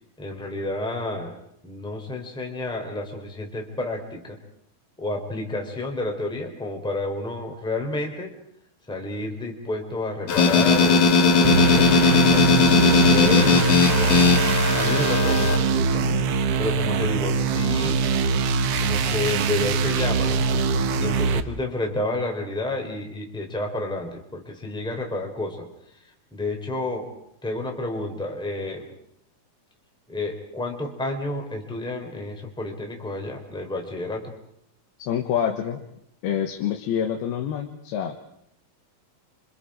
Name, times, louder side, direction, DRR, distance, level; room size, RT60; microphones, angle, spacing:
voice 1, 0.2-1.3 1.6-4.4 5.0-8.3 8.9-12.5 12.9-14.4 14.7-16.2 16.6-18.0 18.8-25.7 26.3-27.1 27.4-28.9 30.1-34.3, left 2 dB, ahead, 2 dB, 3.0 m, -30 dB
sound 1, 10.3-15.6, left 4 dB, 55° left, 2.4 m, -18 dB
sound 2, 11.4-21.4, right 5 dB, 90° right, 1.3 m, -22 dB
voice 2, 35.0-35.9 36.2-38.2, left 9 dB, 85° left, 3 dB, 3.3 m, -27 dB
28.0 x 25.5 x 5.0 m, 0.73 s
omnidirectional pair, 4.3 m